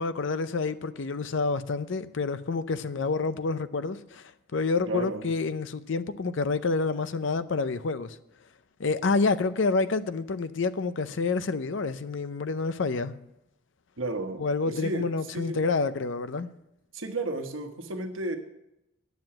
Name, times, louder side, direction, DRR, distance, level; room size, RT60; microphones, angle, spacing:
voice 1, 0.0-8.2 8.8-13.1 14.4-16.5, left 4 dB, 70° left, 0.6 m, -28 dB
voice 2, 4.9-5.3 14.0-15.1 15.3-15.6 16.9-18.4, right 2 dB, 90° right, 1.3 m, -33 dB
9.4 x 7.7 x 7.7 m
head